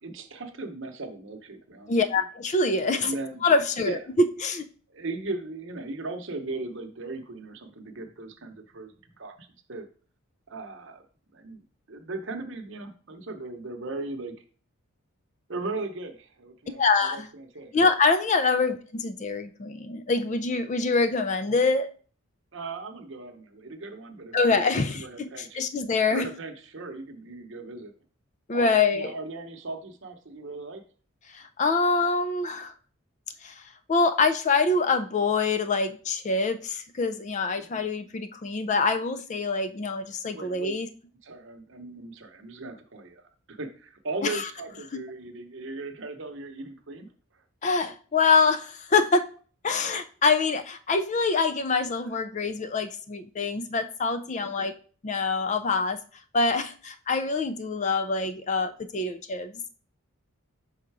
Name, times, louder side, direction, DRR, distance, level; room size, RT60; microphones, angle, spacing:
voice 1, 0.0-2.2 3.0-3.4 3.8-4.0 4.9-9.9 10.5-11.0 11.3-11.6 11.9-14.4 15.5-16.8 17.1-17.7 18.5-18.6 22.5-25.6 26.1-27.9 28.5-30.8 37.6-37.8 40.3-40.7 41.2-43.2 43.5-47.1 47.3-47.4 52.0-52.2 54.3-54.7, right 2 dB, 55° right, 5 dB, 0.9 m, -38 dB
voice 2, 1.9-4.0 4.4-4.7 16.8-17.3 17.7-21.9 24.3-26.3 28.5-29.1 31.3-32.7 33.4-33.6 33.9-40.9 44.2-44.4 44.9-45.0 47.6-49.3 49.6-54.7 55.0-56.0 56.3-59.5, left 4 dB, 30° left, 8 dB, 0.3 m, -25 dB
5.6 x 3.7 x 4.7 m, 0.41 s
head